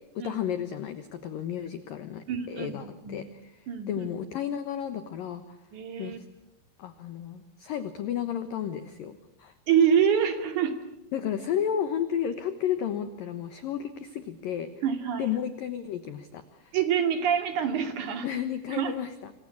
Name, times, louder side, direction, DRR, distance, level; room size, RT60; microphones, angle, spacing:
voice 1, 0.2-5.6 6.0-6.3 6.8-9.5 11.1-14.7 15.2-16.7 18.2-19.3, left 9 dB, 75° left, 10 dB, 2.1 m, -33 dB
voice 2, 2.3-2.8 3.0-3.2 3.7-4.1 5.7-6.2 9.7-10.7 14.8-15.3 16.7-18.3 18.7-18.9, right 8 dB, 45° right, 7 dB, 3.1 m, -26 dB
27.0 x 23.5 x 8.5 m, 0.85 s
omnidirectional pair, 5.8 m